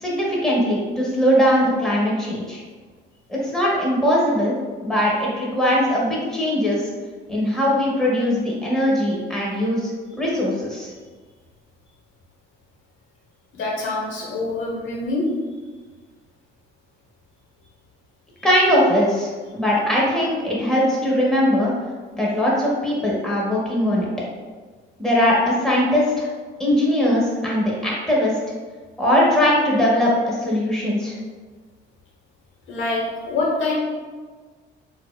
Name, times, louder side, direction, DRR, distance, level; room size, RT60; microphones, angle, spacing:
voice 1, 0.0-2.6 3.3-4.6 4.8-6.8 7.3-9.9 10.2-10.9 18.4-21.7 22.1-24.1 25.0-26.3 26.6-28.4 29.0-31.2, equal, 5° left, -5 dB, 1.0 m, -20 dB
voice 2, 13.5-15.3 32.7-33.8, left 2 dB, 85° left, -3 dB, 1.0 m, -25 dB
4.3 x 2.4 x 2.2 m, 1.4 s
cardioid pair, 90°, 20 cm